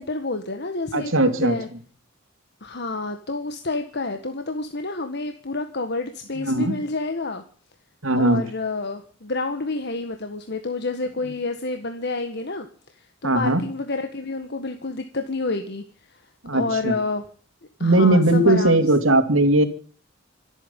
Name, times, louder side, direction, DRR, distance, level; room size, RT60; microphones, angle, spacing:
voice 1, 0.0-1.7 2.6-7.4 8.2-12.7 12.9-15.8 16.5-17.2 17.8-18.8, left 3 dB, 55° left, 7 dB, 1.6 m, -29 dB
voice 2, 0.9-1.5 6.4-6.8 8.0-8.4 13.2-13.6 16.4-17.0 17.8-19.6, right 1 dB, 75° right, 8 dB, 2.8 m, -19 dB
26.0 x 9.1 x 5.5 m, 0.41 s
head